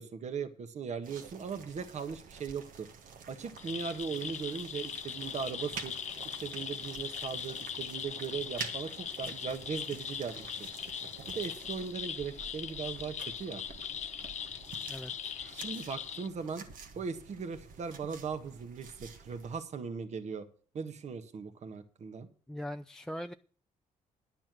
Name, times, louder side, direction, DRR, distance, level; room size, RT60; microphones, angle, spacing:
voice 1, 0.0-2.9 3.3-5.9 6.4-10.7 11.3-13.6 15.5-16.7 16.9-20.5 20.7-22.3, right 6 dB, 50° right, 1.5 m, -39 dB
sound 1, 1.0-19.6, right 5 dB, 70° right, 1.7 m, -49 dB
sound 2, 3.6-16.3, left 8 dB, 55° left, 1.1 m, -40 dB
voice 2, 14.9-15.3 22.5-23.3, equal, 5° left, 0.5 m, -41 dB
11.0 x 8.8 x 6.2 m
cardioid pair, 85°, 14 cm